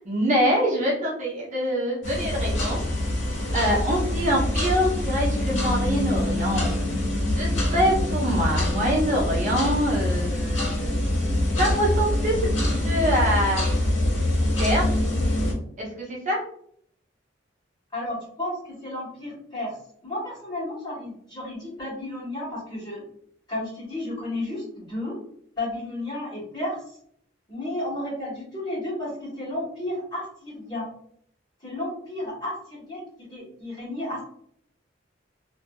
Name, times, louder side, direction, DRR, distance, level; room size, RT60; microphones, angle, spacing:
voice 1, 0.0-2.8 3.5-6.7 7.4-11.0 11.6-12.4 12.6-13.7 14.6-14.8 15.8-16.4, equal, 40° right, -4 dB, 0.7 m, -25 dB
sound 1, 2.0-15.5, left 1 dB, 75° left, 1.2 m, -25 dB
voice 2, 17.9-19.8 20.0-23.0 23.5-25.2 25.6-26.9 27.5-30.9 31.6-34.2, left 1 dB, 25° left, -7 dB, 1.5 m, -32 dB
2.6 x 2.5 x 2.3 m, 0.66 s
head